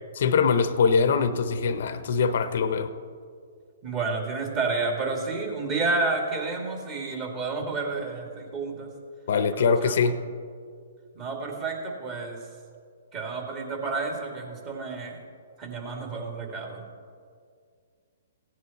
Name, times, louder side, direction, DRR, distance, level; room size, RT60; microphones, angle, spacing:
voice 1, 0.2-2.9 9.3-10.2, left 5 dB, 60° left, 13 dB, 0.7 m, -23 dB
voice 2, 3.8-8.9 9.5-10.0 11.1-12.4 13.1-15.2 15.6-16.8, right 3 dB, 30° right, 1 dB, 2.3 m, -30 dB
16.0 x 9.3 x 4.2 m, 2.1 s
hypercardioid pair, 130°, 0 cm